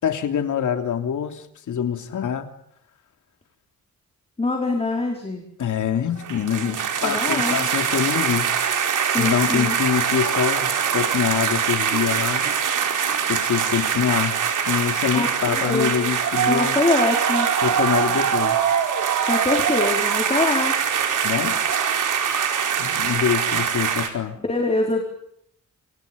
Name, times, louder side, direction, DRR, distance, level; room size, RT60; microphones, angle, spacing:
voice 1, 0.0-2.5 5.6-8.5 9.2-12.5 13.3-14.4 14.7-16.8 17.6-19.0 21.1-21.6 22.8-24.4, left 8 dB, 75° left, 6 dB, 3.3 m, -25 dB
voice 2, 4.4-5.5 7.0-7.7 9.1-9.7 15.1-15.9 16.5-17.5 19.3-20.7 24.5-25.0, left 2 dB, 20° left, 1 dB, 4.9 m, -24 dB
sound 1, 6.2-24.1, right 7 dB, 90° right, 4.6 m, -23 dB
28.5 x 27.5 x 5.4 m, 0.71 s
wide cardioid pair, 135°, 30 cm